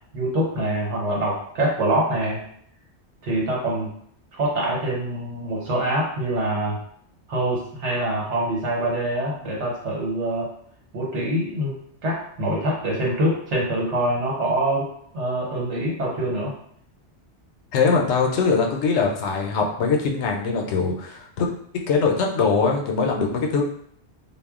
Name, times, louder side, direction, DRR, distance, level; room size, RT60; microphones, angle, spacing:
voice 1, 0.1-2.4 3.2-3.9 4.3-6.8 7.3-10.5 10.9-16.5, right 1 dB, 80° right, -3 dB, 1.2 m, -25 dB
voice 2, 17.7-21.5 21.9-23.6, left 4 dB, 80° left, 1 dB, 0.9 m, -22 dB
2.3 x 2.1 x 3.5 m, 0.65 s
omnidirectional pair, 1.2 m